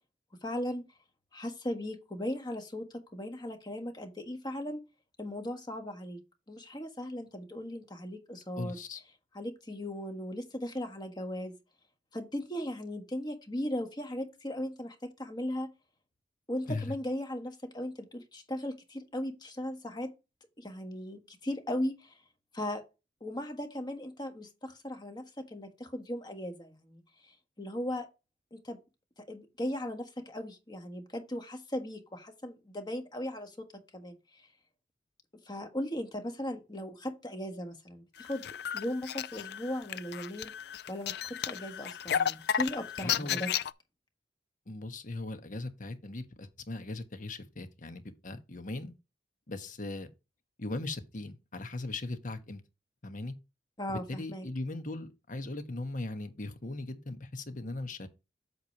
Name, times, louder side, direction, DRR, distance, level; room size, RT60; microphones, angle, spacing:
voice 1, 0.4-0.8 1.3-4.8 5.2-6.2 6.5-8.8 9.3-11.6 12.1-15.7 16.5-20.1 20.6-22.2 22.5-22.8 23.2-28.1 28.5-28.8 29.2-33.7 33.9-34.5 35.4-38.4 38.7-40.5 40.9-43.5 53.8-54.5, left 1 dB, 25° left, 1.5 m, -37 dB
voice 2, 8.6-9.0 16.7-17.0 43.0-43.4 44.7-48.9 49.5-50.1 50.6-52.6 53.0-53.3 53.9-58.1, left 2 dB, 50° left, 1.2 m, -39 dB
sound 1, 38.2-43.7, left 9 dB, 65° left, 0.4 m, -33 dB
8.0 x 3.2 x 5.9 m
head